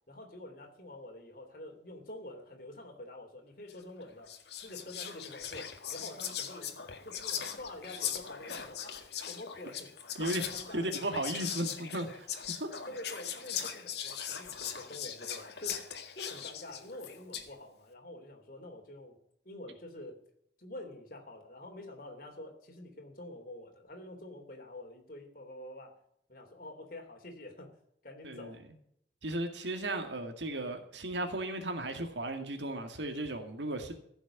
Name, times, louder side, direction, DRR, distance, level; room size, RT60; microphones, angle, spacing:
voice 1, 0.1-4.3 4.6-9.9 10.2-11.1 12.9-15.8 16.1-19.2 19.4-20.2 20.6-26.0 26.3-27.7 28.0-28.6, left 1 dB, 50° left, 2 dB, 3.3 m, -47 dB
Whispering, 3.7-3.9 4.3-17.5, left 8 dB, 70° left, 1.8 m, -40 dB
voice 2, 10.2-12.3 12.6-12.7 28.2-28.5 29.2-33.9, right 1 dB, 85° right, 5 dB, 2.1 m, -35 dB
15.5 x 7.1 x 8.6 m, 0.71 s
head